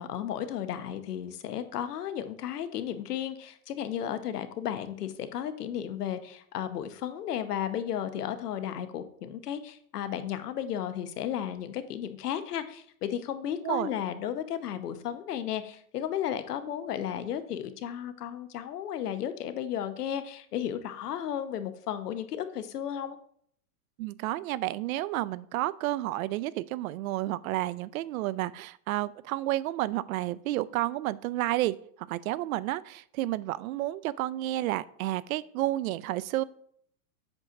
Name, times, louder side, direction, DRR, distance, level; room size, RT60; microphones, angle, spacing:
voice 1, 0.0-23.2, left 10 dB, 85° left, 10 dB, 1.0 m, -34 dB
voice 2, 24.0-36.4, right 16 dB, 65° right, 17 dB, 0.5 m, -31 dB
7.9 x 3.0 x 5.8 m, 0.64 s
hypercardioid pair, 125°, 45 cm